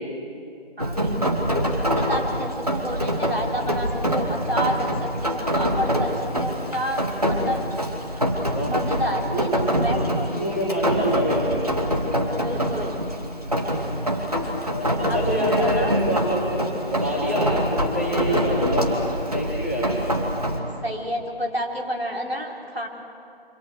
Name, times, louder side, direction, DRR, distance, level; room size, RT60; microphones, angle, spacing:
Rain, 0.8-20.6, equal, 40° right, 2.6 m, -25 dB
voice 1, 0.8-1.3 1.8-7.0 7.3-7.7 8.6-10.7 12.4-13.0 15.1-15.9 20.8-22.9, equal, 75° right, 0 dB, 4.0 m, -30 dB
voice 2, 10.3-11.5 12.6-12.8 14.7-16.4 16.9-17.5 17.8-18.9 19.3-19.9, equal, 15° right, -7 dB, 2.6 m, -26 dB
27.5 x 26.0 x 6.4 m, 2.6 s
figure-of-eight pair, 175°, 31 cm